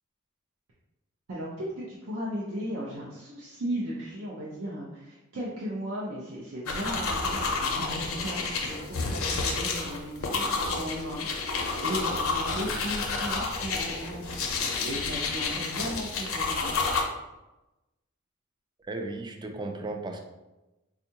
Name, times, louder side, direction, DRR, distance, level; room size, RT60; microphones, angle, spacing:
voice 1, 1.3-14.5 14.8-16.8, equal, 70° right, -6 dB, 0.6 m, -36 dB
sound 1, 6.7-17.0, left 4 dB, 70° left, 0.6 m, -30 dB
voice 2, 18.9-20.3, right 2 dB, 20° right, 4 dB, 0.3 m, -35 dB
4.4 x 2.4 x 2.8 m, 1.0 s
head